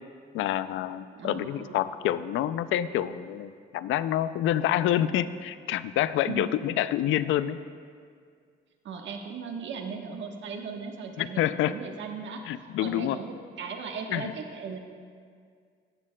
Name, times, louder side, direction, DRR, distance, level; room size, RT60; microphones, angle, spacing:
voice 1, 0.3-7.6 11.2-11.7 12.5-13.2 14.1-14.3, left 12 dB, 80° left, 14 dB, 0.4 m, -27 dB
voice 2, 1.1-1.8 6.3-6.5 8.8-12.4 12.8-14.8, right 5 dB, 70° right, 3 dB, 1.2 m, -37 dB
14.5 x 11.0 x 2.3 m, 2.1 s
cardioid pair, 90°, 20 cm